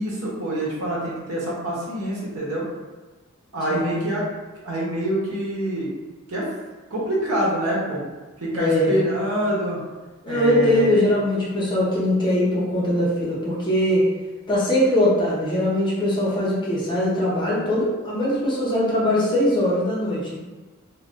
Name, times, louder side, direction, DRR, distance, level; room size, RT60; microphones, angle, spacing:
voice 1, 0.0-2.6 3.5-4.2 4.6-5.9 6.3-6.4 6.9-8.0 8.4-9.8 10.3-11.0, equal, 90° right, -5 dB, 0.9 m, -25 dB
voice 2, 3.7-4.1 8.5-8.9 10.2-14.0 14.5-20.3, left 1 dB, 20° left, -7 dB, 0.7 m, -21 dB
3.2 x 2.3 x 2.5 m, 1.2 s
head